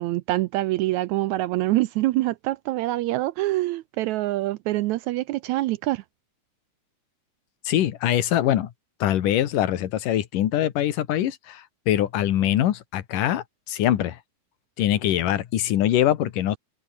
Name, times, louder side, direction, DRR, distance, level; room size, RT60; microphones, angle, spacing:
voice 1, 0.0-6.0, right 17 dB, 80° right, 1.8 m, -25 dB
voice 2, 7.6-8.7 9.0-14.2 14.8-16.6, left 12 dB, 85° left, 3.1 m, -23 dB
open air
omnidirectional pair, 3.7 m